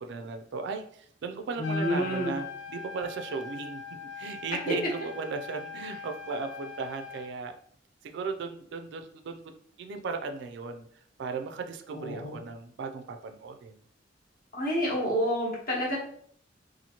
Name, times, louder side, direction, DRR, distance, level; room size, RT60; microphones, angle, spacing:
voice 1, 0.0-3.8 4.2-7.5 8.0-9.5 9.8-10.9 11.2-13.8, right 4 dB, 65° right, 7 dB, 0.3 m, -36 dB
Trumpet, 1.5-7.3, left 5 dB, 80° left, 0.3 m, -41 dB
voice 2, 1.6-2.3 4.6-4.8 11.9-12.4 14.5-16.0, equal, 50° left, -3 dB, 1.0 m, -29 dB
2.8 x 2.5 x 2.8 m, 0.62 s
head